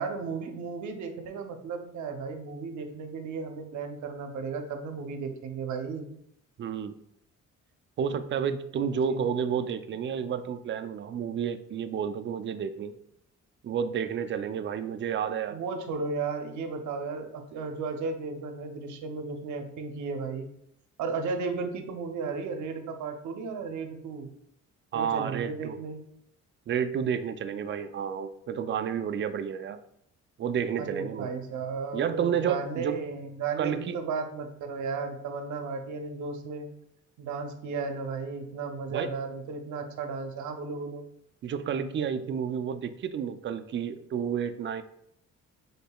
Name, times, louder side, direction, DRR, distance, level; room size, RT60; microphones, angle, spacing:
voice 1, 0.0-6.1 8.7-9.2 15.5-20.5 21.0-24.3 24.9-26.0 30.8-36.7 37.2-41.0, right 4 dB, 70° right, 6 dB, 0.7 m, -34 dB
voice 2, 6.6-7.0 8.0-13.0 13.6-15.6 24.9-25.8 26.7-29.8 30.4-31.3 31.9-33.0 33.6-33.9 38.9-39.1 41.4-44.8, right 7 dB, 40° right, 10 dB, 0.4 m, -30 dB
5.3 x 3.9 x 2.3 m, 0.73 s
cardioid pair, 90°, 30 cm